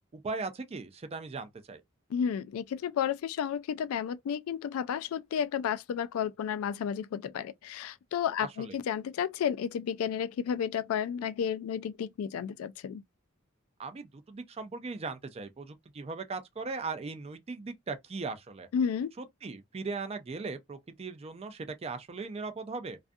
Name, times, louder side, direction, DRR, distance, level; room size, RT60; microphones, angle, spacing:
voice 1, 0.1-1.8 8.6-8.8 13.8-18.7 19.2-23.0, right 4 dB, 30° right, 0.4 m, -38 dB
voice 2, 2.1-13.0 18.7-19.1, left 8 dB, 85° left, 0.3 m, -32 dB
2.4 x 2.3 x 2.5 m
head